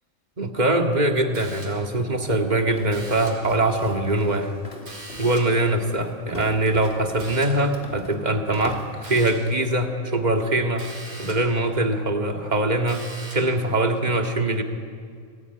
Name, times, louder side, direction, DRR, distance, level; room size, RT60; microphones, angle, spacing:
voice 1, 0.4-4.5 5.2-10.9 11.2-14.6, right 1 dB, 30° right, 4 dB, 2.1 m, -23 dB
sound 1, 1.3-2.0 2.9-3.6 4.9-5.7 7.2-7.7 9.0-9.6 10.8-11.6 12.9-13.6, right 1 dB, 85° right, 4.8 m, -41 dB
Walk footsteps, 1.8-9.5, left 1 dB, 40° left, 3.0 m, -41 dB
28.5 x 19.0 x 9.7 m, 2.2 s
omnidirectional pair, 1.5 m